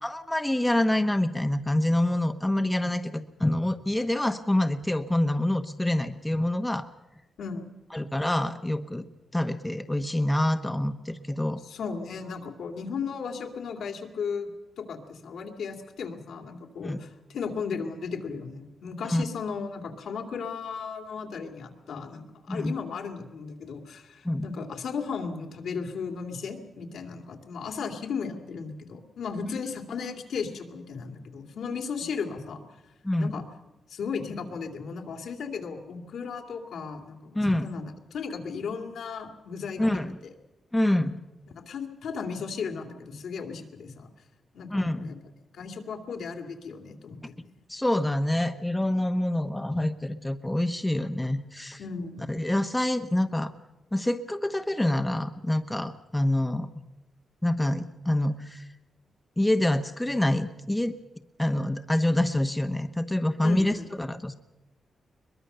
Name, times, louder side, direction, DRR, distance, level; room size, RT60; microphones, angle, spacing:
voice 1, 0.0-6.9 7.9-9.0 9.3-11.6 16.8-17.0 19.0-19.2 22.5-22.7 24.2-24.5 33.0-33.3 37.3-37.7 39.8-40.2 40.7-41.2 44.7-45.1 47.7-51.8 52.3-53.5 53.9-56.7 57.4-58.7 59.4-60.9 61.4-64.3, left 1 dB, 10° left, 7 dB, 1.1 m, -26 dB
voice 2, 11.6-14.5 14.8-32.6 33.2-33.5 33.9-40.0 41.5-44.1 44.5-45.2 45.5-47.5 51.8-52.3 63.4-63.9, left 5 dB, 80° left, 3 dB, 2.6 m, -35 dB
22.0 x 21.5 x 6.8 m, 1.0 s
cardioid pair, 95°, 0 cm